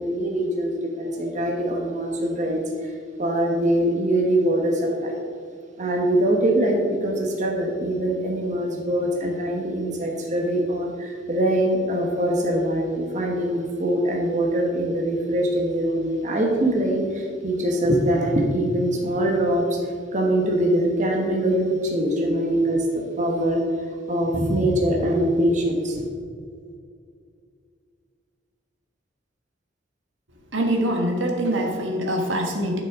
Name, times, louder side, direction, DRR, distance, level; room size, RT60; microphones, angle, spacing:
voice 1, 0.0-2.9 3.2-5.1 5.8-19.8 20.1-22.9 23.2-23.6 24.1-26.1, right 1 dB, 40° right, 0 dB, 1.1 m, -23 dB
voice 2, 30.5-32.8, right 1 dB, 80° right, 1 dB, 1.4 m, -24 dB
11.0 x 6.1 x 3.6 m, 2.2 s
head